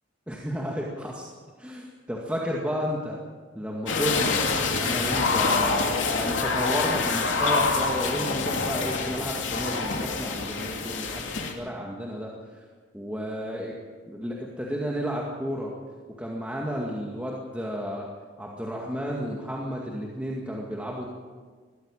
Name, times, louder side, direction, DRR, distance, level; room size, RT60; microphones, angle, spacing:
voice 1, 0.3-1.2 1.6-3.2 3.6-4.5 4.8-12.7 12.9-13.7 14.1-15.7 16.2-18.1 18.4-21.0, equal, 5° right, -2 dB, 2.1 m, -32 dB
sound 1, 3.9-11.5, left 4 dB, 80° left, 2.9 m, -26 dB
21.0 x 15.0 x 9.0 m, 1.5 s
head